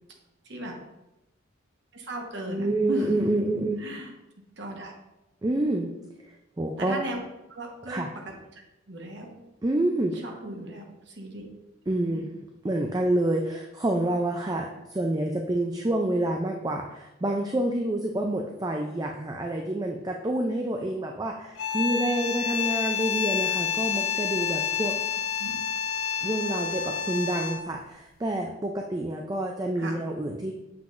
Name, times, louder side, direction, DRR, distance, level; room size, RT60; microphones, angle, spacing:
voice 1, 0.4-0.8 1.9-3.3 3.8-4.1 4.6-4.9 6.8-7.2 7.5-8.0 8.5-9.3 10.2-11.5 12.0-12.2 25.4-25.5 29.8-30.0, right 1 dB, 60° right, 1 dB, 1.2 m, -36 dB
voice 2, 2.5-3.8 5.4-5.9 6.6-7.0 7.9-8.1 9.6-10.2 11.9-12.3 12.6-24.9 26.2-30.5, right 1 dB, 20° right, 2 dB, 0.4 m, -28 dB
sound 1, 21.6-27.8, left 7 dB, 80° left, 0.5 m, -29 dB
7.2 x 5.8 x 2.5 m, 0.93 s
head